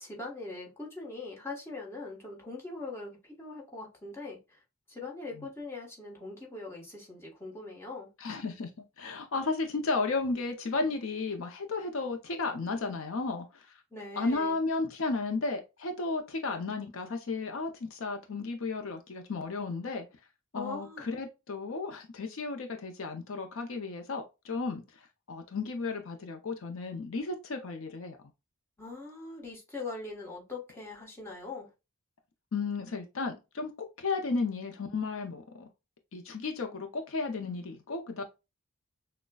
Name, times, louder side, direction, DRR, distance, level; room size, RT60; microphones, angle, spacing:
voice 1, 0.0-4.6 4.9-8.1 13.9-14.6 20.5-21.1 28.8-31.7, left 3 dB, 10° left, 1.2 m, -41 dB
voice 2, 8.2-8.7 9.0-13.7 14.2-20.0 20.5-24.8 25.3-28.2 32.5-35.7 36.1-38.2, left 3 dB, 65° left, 0.6 m, -33 dB
6.2 x 2.2 x 2.2 m
head